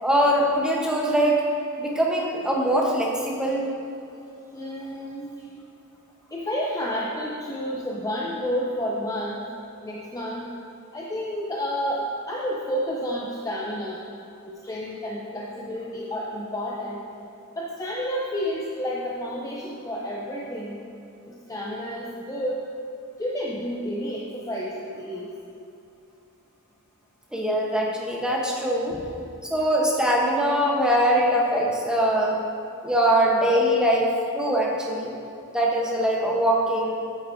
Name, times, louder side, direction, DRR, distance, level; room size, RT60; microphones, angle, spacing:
voice 1, 0.0-1.4 1.8-3.7 27.3-29.0 29.4-32.4 32.8-35.1 35.5-37.0, right 1 dB, 5° right, -2 dB, 0.9 m, -22 dB
voice 2, 4.5-5.4 6.3-9.4 9.8-10.5 10.9-14.0 14.4-17.0 17.6-20.8 21.3-22.7 23.2-25.3, equal, 15° left, -3 dB, 0.5 m, -30 dB
8.9 x 8.6 x 2.6 m, 2.7 s
head